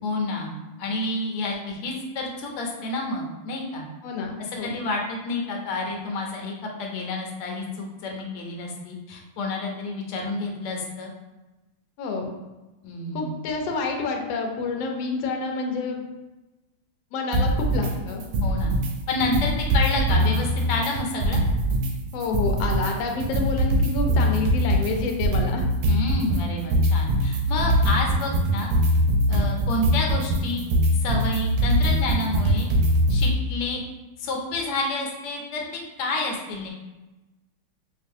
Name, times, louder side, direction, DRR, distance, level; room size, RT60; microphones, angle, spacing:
voice 1, 0.0-3.8 4.5-6.5 6.8-11.1 12.8-13.4 18.4-18.7 19.1-21.4 25.9-28.7 29.3-30.6 31.0-32.7 33.1-33.8 34.2-35.7 36.0-36.7, left 2 dB, 90° left, 1 dB, 1.6 m, -29 dB
voice 2, 4.0-4.7 12.0-12.3 13.1-16.0 17.1-18.2 22.1-25.6, left 4 dB, 75° left, 2 dB, 1.2 m, -28 dB
sound 1, 17.3-17.9 18.2-18.9 19.2-21.9 22.2-33.3, equal, 90° right, 1.6 m, -22 dB
5.0 x 2.3 x 2.6 m, 1.1 s
omnidirectional pair, 2.4 m